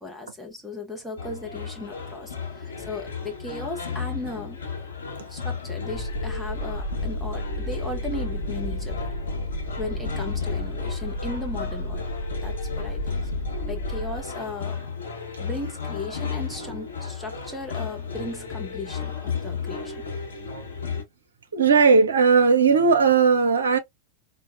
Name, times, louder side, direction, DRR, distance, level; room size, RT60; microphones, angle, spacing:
voice 1, 0.0-4.6 5.3-9.1 9.8-12.0 12.4-13.1 13.7-14.8 15.4-20.0, left 2 dB, ahead, 0.8 m, -36 dB
sound 1, 1.2-21.0, left 6 dB, 70° left, 1.0 m, -34 dB
sound 2, 5.9-14.2, equal, 40° left, 0.7 m, -32 dB
voice 2, 21.5-23.8, right 5 dB, 70° right, 0.6 m, -17 dB
3.8 x 2.2 x 2.4 m
figure-of-eight pair, 90°, 0 cm